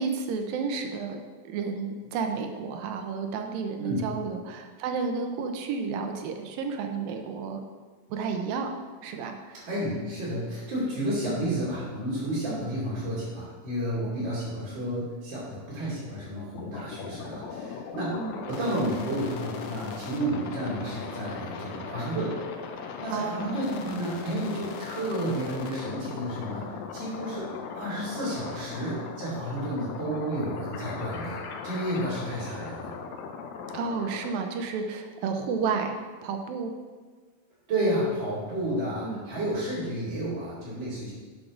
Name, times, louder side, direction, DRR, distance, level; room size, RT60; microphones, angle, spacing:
voice 1, 0.0-7.6 8.1-8.7 9.0-9.7 11.2-11.5 12.5-12.7 18.1-18.4 23.1-23.6 33.7-36.7 39.0-39.2, right 5 dB, 75° right, 5 dB, 2.6 m, -32 dB
voice 2, 9.5-18.1 18.5-22.4 23.0-27.5 27.7-32.9 37.7-41.1, right 1 dB, 35° right, -10 dB, 3.3 m, -31 dB
sound 1, 16.5-34.3, left 5 dB, 75° left, 1.7 m, -39 dB
12.5 x 7.6 x 3.8 m, 1.4 s
omnidirectional pair, 4.2 m